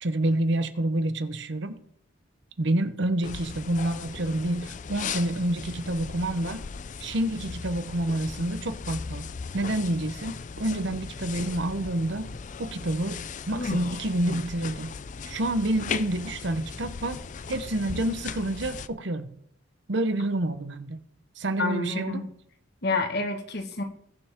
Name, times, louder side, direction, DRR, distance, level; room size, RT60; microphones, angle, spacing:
voice 1, 0.0-1.8 2.6-6.6 7.0-12.3 12.6-14.9 15.2-17.2 17.5-19.3 19.9-21.0 21.4-22.3, right 1 dB, 65° right, 10 dB, 0.9 m, -28 dB
sound 1, 3.2-18.9, left 5 dB, 40° left, 0.4 m, -37 dB
voice 2, 21.6-22.3 22.8-23.8, left 3 dB, 55° left, 6 dB, 1.6 m, -28 dB
21.0 x 7.1 x 3.7 m, 0.67 s
head